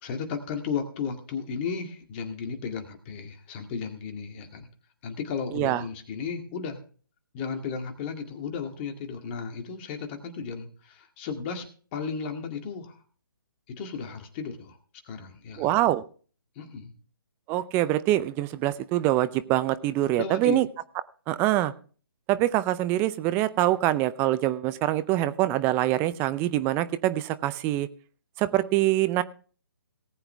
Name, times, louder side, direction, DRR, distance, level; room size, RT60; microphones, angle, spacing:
voice 1, 0.0-4.7 5.0-6.8 7.3-11.7 11.9-13.0 13.7-14.8 15.0-15.7 16.6-16.9 20.2-20.6, left 6 dB, 30° left, 5 dB, 2.0 m, -34 dB
voice 2, 15.6-16.0 17.5-20.7 21.3-21.7 22.3-27.9 28.4-29.2, right 15 dB, 20° right, 15 dB, 0.5 m, -24 dB
18.5 x 8.0 x 3.4 m, 0.40 s
figure-of-eight pair, 140°, 12 cm